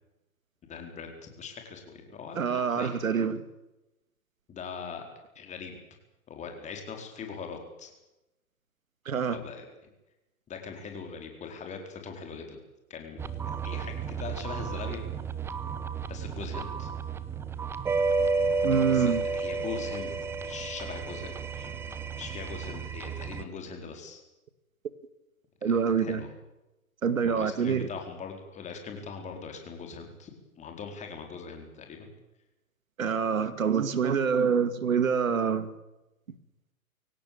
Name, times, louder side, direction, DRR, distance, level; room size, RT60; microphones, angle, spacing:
voice 1, 0.7-2.9 4.5-5.1 5.3-5.8 6.3-7.9 9.3-9.7 10.5-12.6 12.9-15.0 16.1-16.9 18.7-24.2 26.0-26.3 27.2-30.3 30.6-32.1, left 5 dB, 15° left, 4.5 m, -41 dB
voice 2, 2.4-3.4 9.1-9.4 18.6-19.2 25.6-26.2 27.0-27.9 33.0-35.7, right 6 dB, 65° right, 2.4 m, -26 dB
sound 1, 13.2-23.4, right 4 dB, 5° right, 0.7 m, -32 dB
24.0 x 17.5 x 8.8 m
figure-of-eight pair, 125°, 43 cm